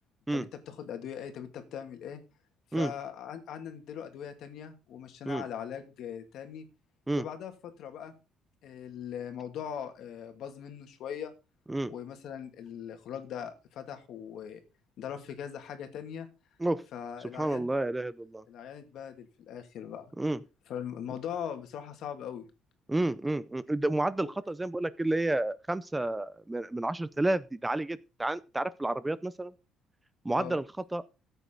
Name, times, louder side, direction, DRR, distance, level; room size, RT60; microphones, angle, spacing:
voice 1, 0.3-2.2 2.7-6.7 7.2-8.1 8.6-11.3 11.9-14.6 15.0-16.3 16.9-17.7 18.5-20.1 20.7-22.5 24.2-24.3 30.3-30.6, left 8 dB, 65° left, 2.3 m, -40 dB
voice 2, 17.3-18.4 20.2-20.4 22.9-29.5 30.2-30.6 30.9-31.0, right 2 dB, 10° right, 0.5 m, -30 dB
14.5 x 8.1 x 3.9 m
cardioid pair, 135°, 0 cm